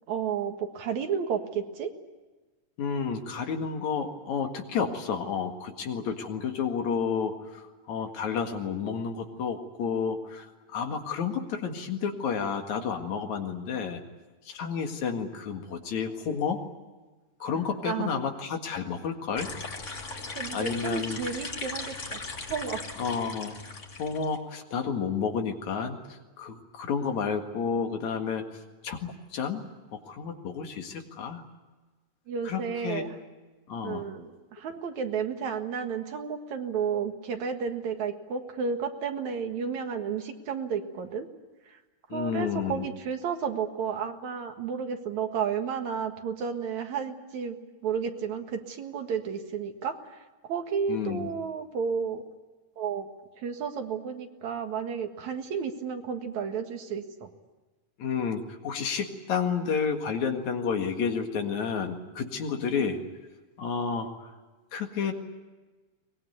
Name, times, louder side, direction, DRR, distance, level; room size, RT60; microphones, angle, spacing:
voice 1, 0.1-1.9 17.8-18.1 20.4-22.2 22.5-22.8 32.3-33.2 33.8-41.3 41.7-41.8 42.1-52.2 52.8-53.1 53.4-57.3 62.8-62.9, right 6 dB, 75° right, 5 dB, 3.1 m, -32 dB
voice 2, 2.8-14.0 14.5-16.6 17.4-19.5 20.5-21.2 23.0-23.6 24.0-26.0 26.4-28.4 28.8-29.6 30.1-31.4 32.4-33.0 33.7-34.1 42.1-42.9 50.9-51.3 58.0-63.0 63.6-64.3 64.7-65.1, left 6 dB, 75° left, 4 dB, 3.3 m, -31 dB
sound 1, 19.4-24.4, left 3 dB, 30° left, 1.8 m, -38 dB
23.0 x 21.0 x 9.4 m, 1.2 s
omnidirectional pair, 3.3 m